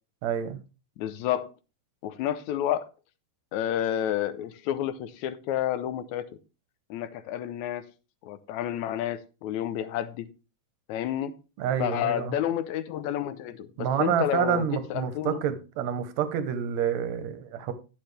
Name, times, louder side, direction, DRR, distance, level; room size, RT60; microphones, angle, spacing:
voice 1, 0.2-0.6 11.6-12.4 13.8-17.7, right 8 dB, 75° right, 2.2 m, -28 dB
voice 2, 1.0-1.5 2.0-2.9 3.5-6.3 6.9-7.8 8.2-10.3 10.9-11.4 11.8-13.7 14.0-15.4, left 11 dB, 85° left, 2.1 m, -30 dB
11.0 x 7.3 x 3.3 m
omnidirectional pair, 3.3 m